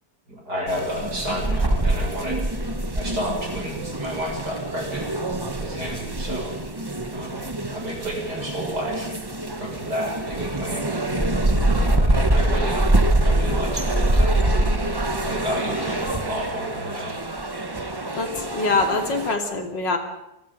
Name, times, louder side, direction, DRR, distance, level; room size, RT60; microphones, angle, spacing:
voice 1, 0.5-2.4 2.9-5.1 5.6-6.8 7.1-9.1 9.6-11.2 11.8-12.8 13.2-17.1, equal, 65° right, -1 dB, 7.8 m, -31 dB
sound 1, 0.7-19.3, right 1 dB, 15° right, 1.2 m, -24 dB
voice 2, 18.2-20.0, left 3 dB, 90° left, 4 dB, 3.3 m, -24 dB
27.5 x 21.0 x 5.3 m, 0.93 s
omnidirectional pair, 1.9 m